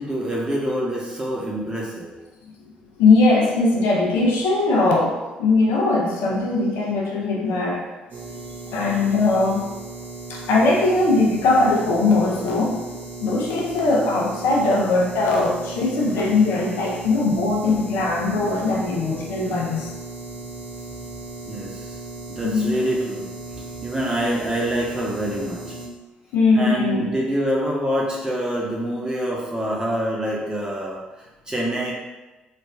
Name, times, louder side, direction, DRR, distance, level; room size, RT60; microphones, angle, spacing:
voice 1, 0.0-2.1 21.5-22.0 22.3-23.3 23.6-25.8 26.5-31.0 31.5-31.9, right 1 dB, 20° right, -4 dB, 0.9 m, -26 dB
voice 2, 3.0-7.9 8.3-8.4 8.7-9.6 10.3-12.8 13.2-19.9 22.4-22.7 26.3-27.1, left 3 dB, 75° left, -1 dB, 0.6 m, -20 dB
sound 1, 8.1-25.9, right 3 dB, 55° right, 0.9 m, -36 dB
3.2 x 2.5 x 3.3 m, 1.1 s
hypercardioid pair, 50°, 4 cm